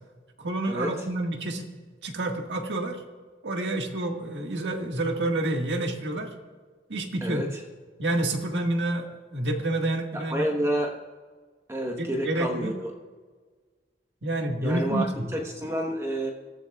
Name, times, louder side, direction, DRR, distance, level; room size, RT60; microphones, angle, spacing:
voice 1, 0.4-1.7 2.0-3.0 3.4-6.3 6.9-7.4 8.0-10.4 12.0-12.7 14.2-15.3, right 2 dB, 90° right, 3 dB, 1.7 m, -28 dB
voice 2, 7.2-7.6 10.1-11.0 11.7-12.9 14.6-15.1 15.3-16.3, right 1 dB, 15° right, 1 dB, 1.1 m, -29 dB
25.0 x 14.0 x 2.4 m, 1.5 s
head